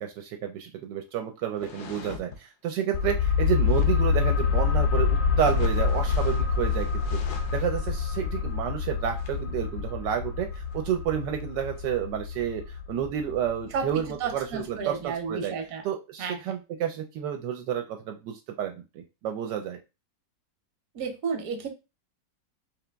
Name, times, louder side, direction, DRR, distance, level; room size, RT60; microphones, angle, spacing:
voice 1, 0.0-15.5 15.8-19.8, right 9 dB, 80° right, 4 dB, 1.2 m, -30 dB
sound 1, 1.5-2.4 3.6-4.0 5.4-7.8 8.1-8.2 8.4-8.5 9.0-9.4 10.6-10.9 11.4-11.5 11.7-12.2, left 5 dB, 90° left, 1.5 m, -43 dB
sound 2, 2.9-14.3 14.6-14.7, left 6 dB, 70° left, 1.0 m, -27 dB
voice 2, 14.2-15.8 16.2-16.4 20.9-21.7, right 6 dB, 60° right, 6 dB, 1.2 m, -31 dB
3.8 x 2.9 x 3.4 m, 0.27 s
omnidirectional pair, 2.0 m